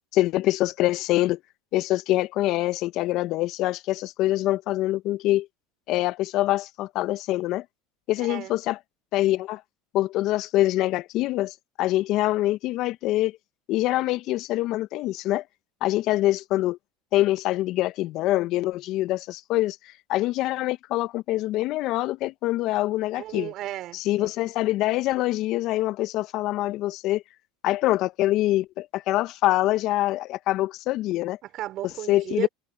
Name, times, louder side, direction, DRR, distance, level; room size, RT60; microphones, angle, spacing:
voice 1, 0.1-1.4 1.7-5.5 5.9-7.6 8.1-8.8 9.1-9.6 9.9-13.3 13.7-15.4 15.8-16.8 17.1-23.5 23.9-27.2 27.6-31.4 32.1-32.5, left 16 dB, 55° left, 1.3 m, -25 dB
voice 2, 8.2-8.6 23.2-24.3 31.5-32.5, right 14 dB, 50° right, 5.3 m, -34 dB
hypercardioid pair, 85°, 0 cm